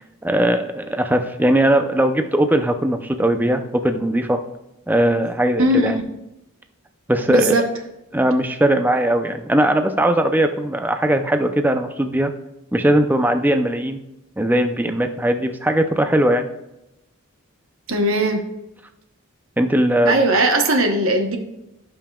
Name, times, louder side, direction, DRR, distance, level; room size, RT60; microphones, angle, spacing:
voice 1, 0.2-4.4 4.9-6.0 7.1-7.6 8.1-12.3 12.7-14.0 14.4-16.5 19.6-20.2, right 1 dB, 10° right, 7 dB, 0.5 m, -19 dB
voice 2, 5.6-6.0 7.3-7.6 17.9-18.4 20.0-21.4, right 1 dB, 65° right, 4 dB, 1.0 m, -18 dB
16.5 x 5.6 x 2.3 m, 0.90 s
head